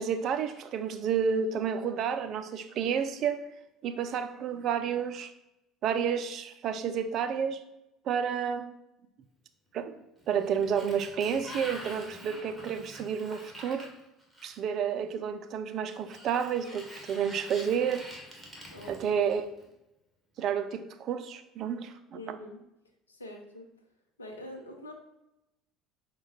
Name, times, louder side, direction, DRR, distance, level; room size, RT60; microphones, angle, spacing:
voice 1, 0.0-3.4 3.8-5.3 5.8-7.6 8.1-8.7 9.7-9.9 10.3-13.9 14.4-18.1 18.9-19.5 20.4-22.4, right 7 dB, 50° right, 9 dB, 0.4 m, -30 dB
Sliding door, 10.2-14.8 15.9-19.6, equal, ahead, 1.6 m, -46 dB
voice 2, 22.1-22.6 23.1-23.7 24.2-24.9, left 1 dB, 90° left, 2 dB, 0.6 m, -44 dB
5.6 x 2.2 x 4.2 m, 0.89 s
figure-of-eight pair, 60°, 0 cm